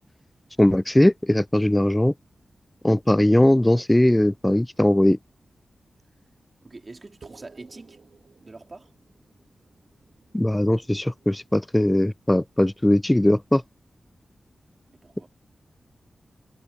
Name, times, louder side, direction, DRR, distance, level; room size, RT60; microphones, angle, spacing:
voice 1, 0.6-2.1 2.8-5.2 10.3-13.6, left 1 dB, 15° left, 0.4 m, -19 dB
voice 2, 6.6-8.0 8.4-8.9 14.9-15.3, right 3 dB, 40° right, 3.9 m, -44 dB
sound 1, 7.2-12.0, right 5 dB, 70° right, 2.8 m, -54 dB
cardioid pair, 55°, 0 cm